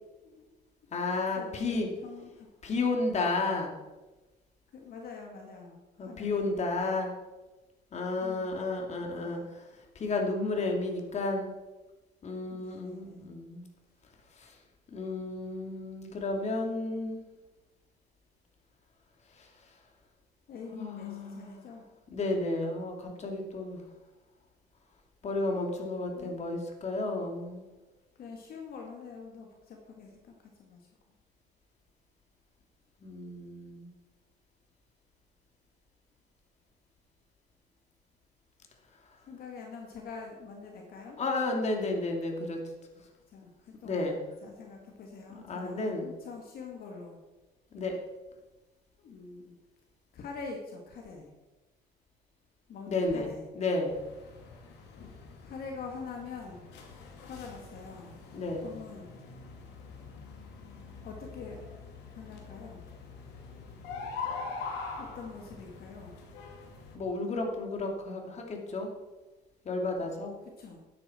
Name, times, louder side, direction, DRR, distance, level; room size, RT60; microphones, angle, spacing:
voice 1, 0.2-0.5 1.3-1.8 2.0-2.5 4.7-6.5 8.2-9.5 12.5-13.3 20.5-21.8 26.1-26.3 28.2-30.9 39.3-41.2 43.3-47.2 49.0-49.6 50.1-51.3 52.7-53.5 55.4-56.7 57.2-58.2 58.6-59.1 61.0-61.6 62.1-62.9 65.0-66.2 70.6-70.8, left 4 dB, 60° left, 1 dB, 2.0 m, -45 dB
voice 2, 0.9-1.9 2.6-3.7 6.0-7.1 7.9-9.7 9.9-11.5 12.2-13.7 14.4-14.5 14.9-17.2 19.4-19.5 20.8-21.6 22.1-23.8 25.2-27.7 33.0-33.9 41.2-42.6 43.8-44.2 45.3-46.1 47.7-48.0 52.9-53.3 53.5-54.0 58.3-58.8 66.9-68.9 69.6-70.4, left 2 dB, 40° left, 2 dB, 2.6 m, -32 dB
sound 1, 53.9-67.0, left 4 dB, 90° left, 2.3 m, -44 dB
12.5 x 9.7 x 4.4 m, 1.1 s
cardioid pair, 110°, 17 cm